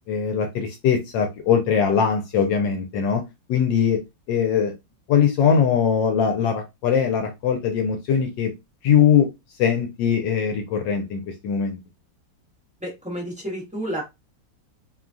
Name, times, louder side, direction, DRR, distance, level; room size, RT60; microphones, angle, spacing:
voice 1, 0.1-3.2 3.5-4.0 4.3-4.7 5.1-8.5 8.8-9.3 9.6-11.8, left 7 dB, 75° left, 4 dB, 1.2 m, -21 dB
voice 2, 12.8-14.0, right 1 dB, 5° right, -4 dB, 0.7 m, -30 dB
3.1 x 2.3 x 2.5 m, 0.22 s
omnidirectional pair, 2.0 m